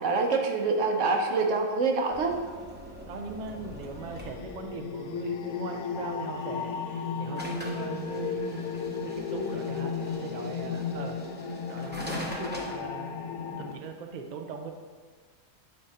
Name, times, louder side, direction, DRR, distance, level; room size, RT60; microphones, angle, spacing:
voice 1, 0.0-2.4, right 3 dB, 60° right, 3 dB, 1.0 m, -26 dB
sound 1, 2.1-4.8 7.4-12.8, equal, 10° right, 0.6 m, -42 dB
voice 2, 3.1-8.7 9.0-11.2 11.7-13.2 13.6-14.7, right 4 dB, 80° right, 4 dB, 0.4 m, -39 dB
sound 2, 3.5-13.7, left 6 dB, 85° left, 1.1 m, -35 dB
8.6 x 3.8 x 4.1 m, 1.5 s
omnidirectional pair, 1.5 m